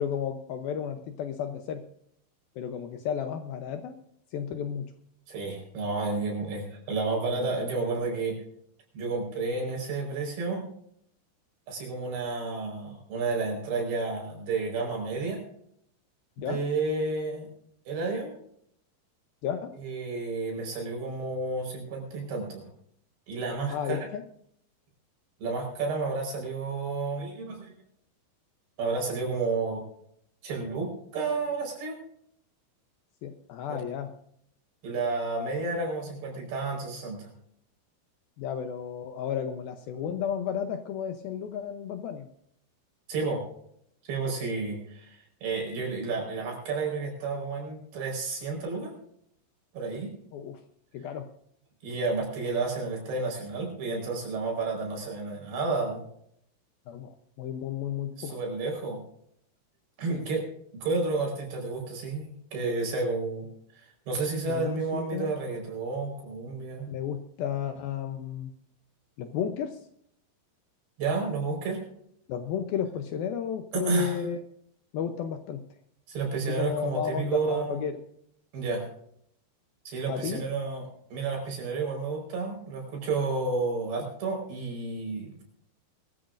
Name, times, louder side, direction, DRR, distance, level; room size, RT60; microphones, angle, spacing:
voice 1, 0.0-1.8 2.6-3.9 4.3-4.9 16.4-16.6 19.4-19.7 23.7-24.2 33.2-34.1 38.4-42.3 50.3-50.6 50.9-51.3 56.9-58.4 60.1-60.3 64.5-65.4 66.9-68.5 69.2-69.8 72.3-74.4 74.9-75.6 76.5-78.0 80.1-80.4, left 8 dB, 75° left, 6 dB, 2.3 m, -33 dB
voice 2, 5.3-8.4 8.9-10.6 11.7-15.4 16.4-17.5 17.9-18.3 19.8-22.6 23.3-24.0 25.4-27.7 28.8-29.8 30.4-32.0 33.7-33.8 34.8-37.3 43.1-43.4 44.0-48.9 49.7-50.1 51.8-56.0 58.2-59.0 60.0-60.4 60.8-63.5 63.8-66.9 71.0-71.8 73.7-74.2 76.1-77.9 78.5-78.9 79.8-85.4, right 3 dB, 65° right, 0 dB, 6.6 m, -31 dB
22.0 x 13.5 x 2.6 m, 0.70 s
omnidirectional pair, 5.0 m